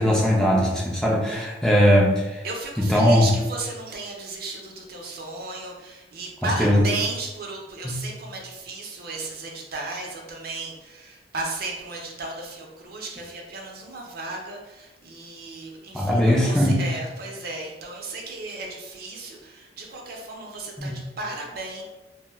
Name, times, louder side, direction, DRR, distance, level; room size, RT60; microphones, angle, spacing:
voice 1, 0.0-2.4 2.8-3.3 6.4-6.8 7.8-8.0 15.9-16.9 20.8-20.9, equal, 5° left, -4 dB, 0.3 m, -20 dB
voice 2, 2.4-21.8, right 3 dB, 55° right, 0 dB, 0.5 m, -34 dB
2.2 x 2.0 x 3.3 m, 1.1 s
head